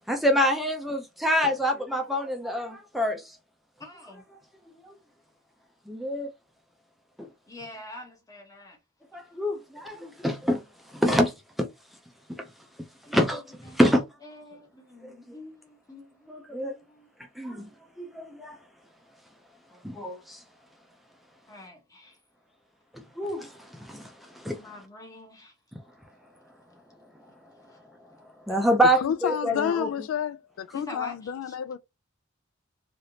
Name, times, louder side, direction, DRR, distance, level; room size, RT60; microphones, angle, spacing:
voice 1, 0.1-3.4 4.8-4.9 5.9-6.3 7.2-7.3 9.1-11.7 12.3-12.5 13.1-14.0 15.0-15.2 16.3-16.7 17.4-17.7 18.0-18.6 19.8-20.4 22.9-24.7 28.5-29.9, equal, ahead, 0.4 m, -26 dB
voice 2, 3.8-4.2 7.5-8.8 13.1-13.2 13.6-17.1 21.5-22.2 24.5-25.5 28.5-28.6 30.7-31.6, left 1 dB, 15° left, 1.0 m, -45 dB
voice 3, 29.0-31.8, left 8 dB, 85° left, 0.3 m, -30 dB
3.4 x 2.5 x 2.7 m
head